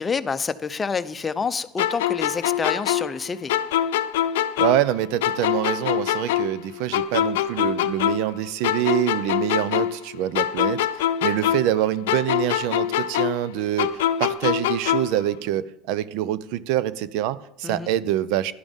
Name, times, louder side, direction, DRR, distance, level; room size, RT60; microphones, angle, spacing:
voice 1, 0.0-3.5 17.6-17.9, left 5 dB, 25° left, 13 dB, 0.6 m, -28 dB
sound 1, 1.8-4.9 5.2-8.4 8.6-11.8 12.1-15.2, left 11 dB, 85° left, 0.6 m, -24 dB
voice 2, 4.6-10.8 11.2-18.5, right 12 dB, 70° right, 18 dB, 0.5 m, -25 dB
11.5 x 11.0 x 3.6 m, 0.85 s
supercardioid pair, 90°, 0 cm